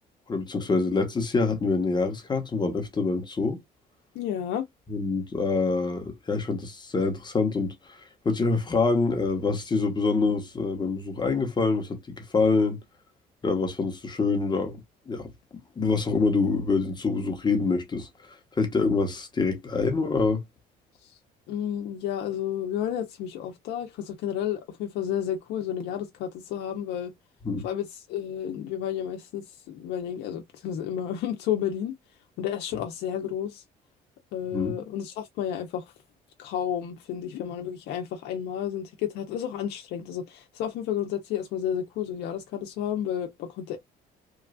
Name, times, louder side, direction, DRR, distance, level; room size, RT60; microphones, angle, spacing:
voice 1, 0.3-3.6 4.9-12.8 13.4-15.3 15.8-20.4 27.4-27.7 34.5-34.8, left 4 dB, 25° left, 0.9 m, -26 dB
voice 2, 4.1-4.7 21.5-27.1 27.6-32.0 32.4-33.6 34.3-35.8 36.4-43.8, left 9 dB, 85° left, 0.7 m, -31 dB
3.1 x 2.4 x 2.3 m
cardioid pair, 110°, 17 cm